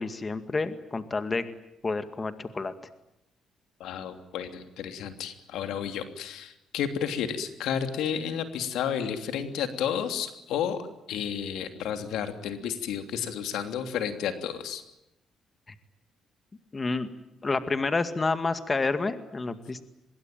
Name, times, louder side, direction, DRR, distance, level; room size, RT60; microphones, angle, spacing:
voice 1, 0.0-1.5 1.8-2.7 16.7-17.1 17.4-19.8, left 3 dB, 30° left, 10 dB, 2.1 m, -29 dB
voice 2, 3.8-14.8, left 8 dB, 85° left, 8 dB, 3.1 m, -32 dB
25.0 x 22.5 x 9.0 m, 0.88 s
cardioid pair, 90°, 0 cm